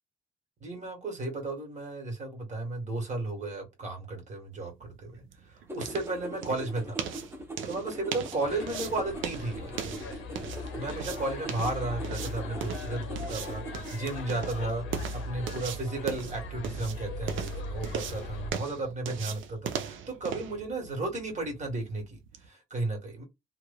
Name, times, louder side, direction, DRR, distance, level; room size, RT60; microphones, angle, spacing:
voice 1, 0.6-7.0 7.6-9.7 10.7-23.2, right 2 dB, 35° right, 1.7 m, -34 dB
sound 1, 4.7-22.5, right 8 dB, 75° right, 0.6 m, -40 dB
sound 2, 5.7-14.0, right 1 dB, 10° right, 0.8 m, -43 dB
sound 3, 8.4-18.5, left 2 dB, 85° left, 0.6 m, -39 dB
3.0 x 2.3 x 2.3 m
cardioid pair, 90°, 20 cm